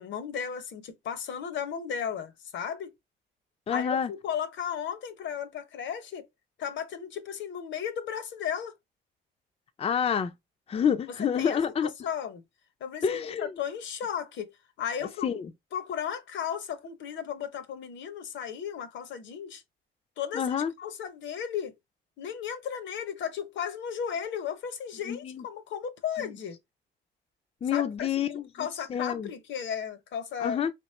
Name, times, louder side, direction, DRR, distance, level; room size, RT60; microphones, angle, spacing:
voice 1, 0.0-2.9 3.7-6.3 6.6-8.7 11.1-12.4 12.8-14.5 14.8-15.4 15.7-19.6 20.2-21.7 22.2-26.6 27.7-28.2 28.5-30.6, left 8 dB, 70° left, 0.7 m, -35 dB
voice 2, 3.7-4.1 9.8-10.3 10.7-11.9 13.0-13.5 15.2-15.5 20.3-20.7 25.1-25.4 27.6-29.3 30.4-30.7, left 7 dB, 30° left, 0.4 m, -28 dB
3.0 x 3.0 x 3.1 m
cardioid pair, 90°, 20 cm